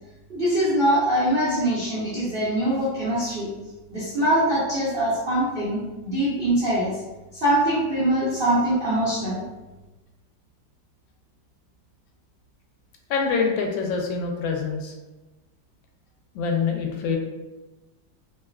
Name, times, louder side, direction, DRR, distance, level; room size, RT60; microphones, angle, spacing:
voice 1, 0.3-3.5 3.9-6.9 7.3-9.4, right 1 dB, 65° right, -11 dB, 0.5 m, -23 dB
voice 2, 13.1-14.9 16.3-17.2, left 5 dB, 90° left, 2 dB, 1.3 m, -25 dB
3.1 x 2.3 x 2.2 m, 1.1 s
omnidirectional pair, 2.0 m